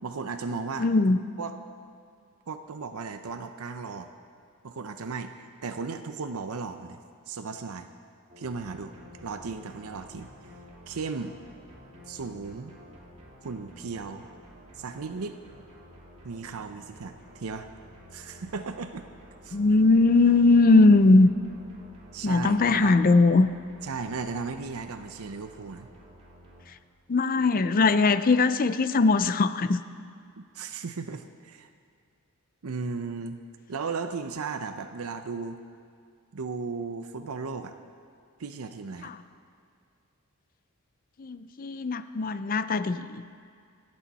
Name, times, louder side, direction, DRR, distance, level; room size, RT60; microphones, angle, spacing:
voice 1, 0.0-0.9 1.4-1.6 2.5-4.1 4.6-7.0 7.3-7.9 8.4-8.9 9.2-10.3 10.9-11.4 12.1-12.7 13.4-14.3 14.8-15.4 16.2-17.7 18.1-19.1 19.4-19.6 22.1-22.9 23.8-25.9 30.4-31.7 32.6-33.4 33.7-35.6 36.3-37.7 38.4-39.1, right 4 dB, 85° right, 8 dB, 0.6 m, -35 dB
voice 2, 0.8-1.2 19.5-21.3 22.2-23.5 27.1-29.8 39.0-39.2 41.2-43.2, left 3 dB, 40° left, 12 dB, 0.5 m, -20 dB
sound 1, 8.3-26.6, equal, 30° right, 2.5 m, -51 dB
25.5 x 8.5 x 4.2 m, 2.3 s
head